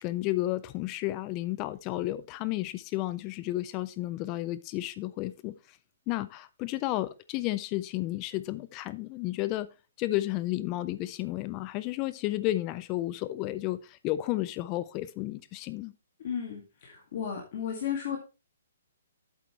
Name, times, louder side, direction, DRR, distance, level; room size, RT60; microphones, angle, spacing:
voice 1, 0.0-5.5 6.1-9.7 10.0-15.9, left 16 dB, 25° left, 0.4 m, -32 dB
voice 2, 16.2-18.2, left 8 dB, 45° left, 1.9 m, -34 dB
8.0 x 7.7 x 3.1 m
hypercardioid pair, 160°, 0 cm